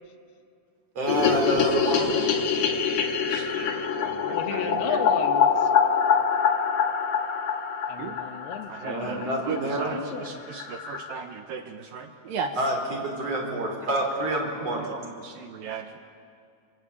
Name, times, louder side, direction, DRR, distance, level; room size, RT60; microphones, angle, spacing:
voice 1, 1.0-2.1 8.8-10.0 12.6-14.9, right 1 dB, 40° right, 0 dB, 5.6 m, -28 dB
sound 1, 1.1-9.3 9.6-9.7 9.9-10.0 10.3-10.4 10.6-11.1, left 6 dB, 55° left, 2.4 m, -25 dB
voice 2, 3.3-4.1 4.5-5.0 8.0-8.2 8.7-12.5 14.8-16.0, right 6 dB, 70° right, 4 dB, 2.8 m, -36 dB
voice 3, 4.3-5.7 7.9-9.3 9.7-10.4, left 7 dB, 80° left, 7 dB, 3.2 m, -35 dB
27.0 x 26.0 x 8.5 m, 2.5 s
omnidirectional pair, 4.6 m